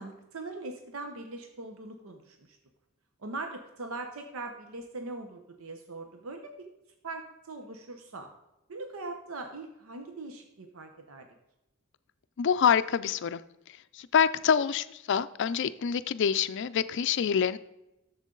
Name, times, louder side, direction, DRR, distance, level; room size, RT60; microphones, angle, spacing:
voice 1, 0.0-2.6 3.2-6.7 7.0-8.3 8.7-11.3, right 2 dB, 80° right, 5 dB, 0.9 m, -41 dB
voice 2, 12.4-13.4 13.7-17.6, left 7 dB, 60° left, 14 dB, 0.4 m, -26 dB
11.0 x 7.2 x 3.8 m, 0.92 s
head